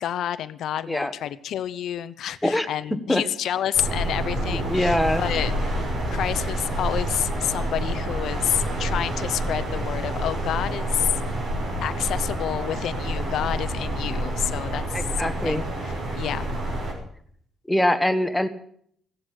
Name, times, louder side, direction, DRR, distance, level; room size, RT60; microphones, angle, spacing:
voice 1, 0.0-5.5 6.1-11.2 11.8-15.7 16.1-16.5, left 11 dB, 75° left, 13 dB, 0.7 m, -29 dB
sound 1, 3.7-16.9, right 1 dB, 65° right, 5.8 m, -28 dB
voice 2, 4.5-5.2 14.9-15.6 17.7-18.5, left 1 dB, 5° left, 10 dB, 1.4 m, -23 dB
16.5 x 7.8 x 9.9 m, 0.64 s
cardioid pair, 90°, 0 cm